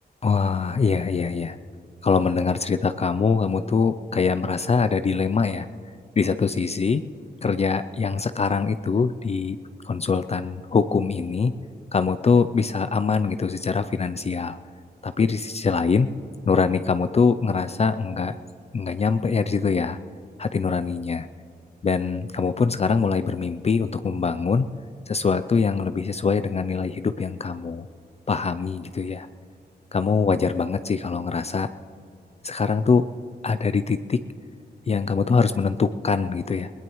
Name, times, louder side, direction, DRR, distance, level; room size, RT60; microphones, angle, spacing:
voice 1, 0.2-1.6 2.0-5.7 6.2-7.0 7.4-9.6 9.8-11.5 11.9-14.6 15.0-16.1 16.5-18.4 18.7-20.0 20.4-21.3 21.8-24.7 25.1-27.9 28.3-29.3 29.9-31.7 32.4-33.0 33.4-34.2 34.9-36.7, left 5 dB, 40° left, 11 dB, 0.4 m, -23 dB
21.0 x 18.5 x 3.1 m, 2.5 s
wide cardioid pair, 85°, 17 cm